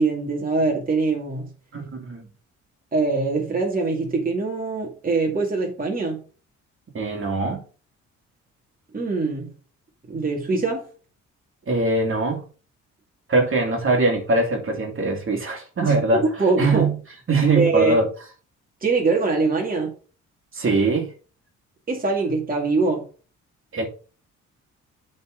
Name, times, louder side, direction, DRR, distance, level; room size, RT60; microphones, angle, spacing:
voice 1, 0.0-1.5 2.9-6.2 8.9-9.5 10.1-10.8 15.8-16.9 17.5-18.0 18.8-19.9 21.9-23.1, right 3 dB, 30° right, 2.2 m, -23 dB
voice 2, 1.7-2.3 6.9-7.6 11.7-12.4 13.3-16.2 16.6-17.0 17.3-18.1 20.5-21.1 23.7-23.9, right 3 dB, 45° right, 2.5 m, -22 dB
8.2 x 4.4 x 4.9 m
cardioid pair, 90°, 30 cm